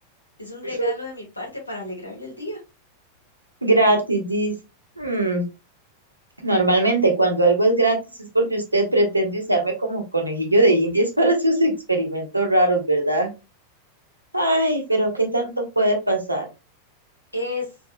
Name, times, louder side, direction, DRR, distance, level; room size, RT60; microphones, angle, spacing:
voice 1, 0.4-2.6 14.9-15.0 17.3-17.7, left 2 dB, 85° left, 0 dB, 1.5 m, -32 dB
voice 2, 3.6-4.5 5.0-5.4 6.4-8.0 8.3-13.3 14.3-15.5 15.8-16.5, right 1 dB, 85° right, 3 dB, 1.0 m, -20 dB
3.8 x 3.3 x 2.2 m, 0.26 s
figure-of-eight pair, 90°, 0 cm